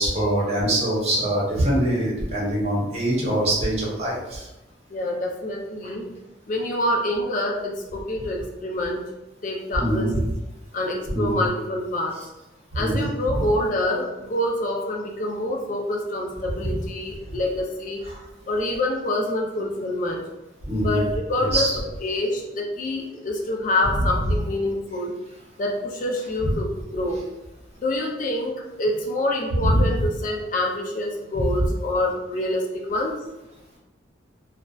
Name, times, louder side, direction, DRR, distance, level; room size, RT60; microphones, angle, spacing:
voice 1, 0.0-4.5 9.8-10.2 11.1-11.4 12.8-13.4 16.6-16.7 18.1-18.2 20.7-21.0 21.4-21.8 29.6-30.0, right 1 dB, 35° right, -6 dB, 0.8 m, -23 dB
voice 2, 4.9-6.1 6.5-9.0 9.4-10.1 10.7-12.1 12.7-18.0 18.5-20.2 20.8-25.1 25.6-27.2 27.8-33.1, left 1 dB, 40° left, 0 dB, 0.4 m, -26 dB
2.6 x 2.1 x 2.3 m, 0.99 s
head